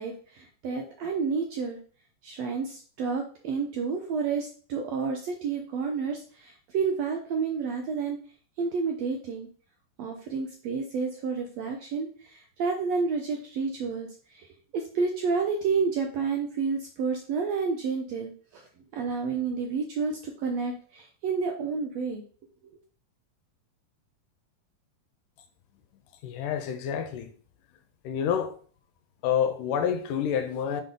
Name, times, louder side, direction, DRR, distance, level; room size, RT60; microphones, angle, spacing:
voice 1, 0.0-1.8 2.2-8.2 8.6-9.5 10.0-14.5 14.7-18.7 18.9-22.2 22.6-22.7, right 5 dB, 75° right, 1.6 m, -30 dB
voice 2, 26.2-27.3 28.0-28.6 29.2-30.8, left 8 dB, 80° left, 2.2 m, -28 dB
5.8 x 5.3 x 3.8 m
omnidirectional pair, 3.8 m